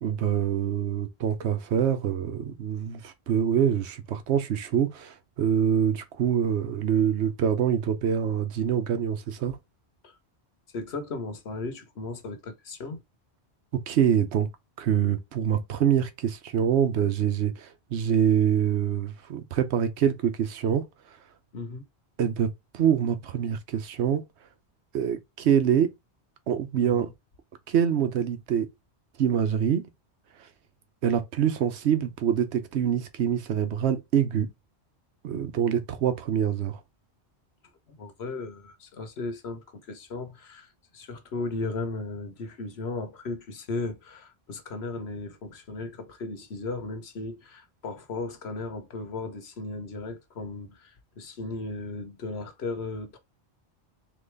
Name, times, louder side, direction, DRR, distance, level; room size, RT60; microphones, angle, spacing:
voice 1, 0.0-9.6 13.7-14.5 14.8-20.9 22.2-24.2 24.9-25.9 26.5-27.1 27.7-28.7 29.2-29.8 31.0-34.5 35.2-36.8, right 8 dB, 80° right, 1.0 m, -25 dB
voice 2, 10.7-13.0 21.5-21.8 26.8-27.1 37.9-53.2, left 3 dB, 70° left, 1.2 m, -36 dB
3.9 x 3.1 x 3.2 m
omnidirectional pair, 1.1 m